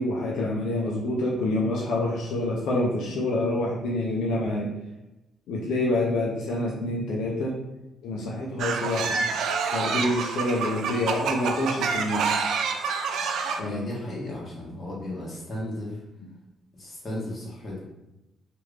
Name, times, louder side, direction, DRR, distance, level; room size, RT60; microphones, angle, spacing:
voice 1, 0.0-4.7 5.5-7.6 8.0-9.2 9.7-12.3 13.6-13.8, left 1 dB, 80° left, -3 dB, 0.5 m, -27 dB
sound 1, 8.6-13.6, right 5 dB, 75° right, 0.3 m, -27 dB
voice 2, 13.6-16.0 16.7-17.8, left 1 dB, 35° left, -5 dB, 1.4 m, -35 dB
3.0 x 2.5 x 3.2 m, 0.96 s
cardioid pair, 90°, 0 cm